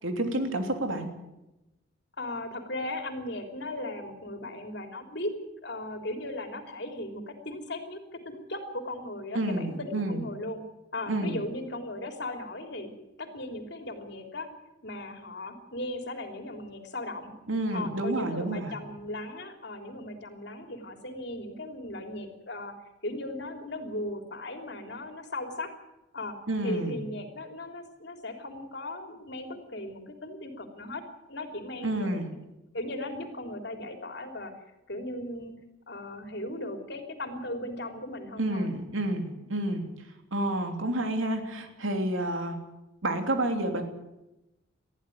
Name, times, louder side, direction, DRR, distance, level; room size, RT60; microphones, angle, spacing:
voice 1, 0.0-1.1 9.3-10.2 11.1-11.4 17.5-18.7 26.5-27.0 31.8-32.3 38.4-39.8 40.3-42.6 43.0-43.8, right 1 dB, 85° right, 5 dB, 3.2 m, -29 dB
voice 2, 2.2-5.3 5.6-10.6 10.9-12.9 13.2-14.5 14.8-17.3 17.7-22.7 23.0-25.7 26.1-26.4 26.6-31.0 31.3-32.2 32.7-34.5 34.9-35.5 35.9-38.7, left 1 dB, 55° left, 5 dB, 3.4 m, -37 dB
20.5 x 15.0 x 9.4 m, 0.95 s
head